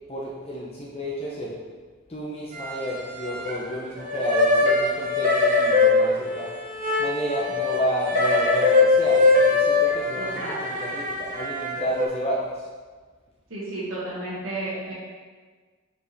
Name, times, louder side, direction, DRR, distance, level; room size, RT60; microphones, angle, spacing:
voice 1, 0.1-1.6 2.1-6.5 7.0-12.7, equal, 30° left, -4 dB, 0.7 m, -31 dB
sound 1, 2.5-3.7 4.0-12.1, left 3 dB, 40° right, 0.7 m, -22 dB
voice 2, 10.2-10.6 13.5-14.9, right 2 dB, 80° right, -8 dB, 1.4 m, -32 dB
5.3 x 5.0 x 4.0 m, 1.4 s
head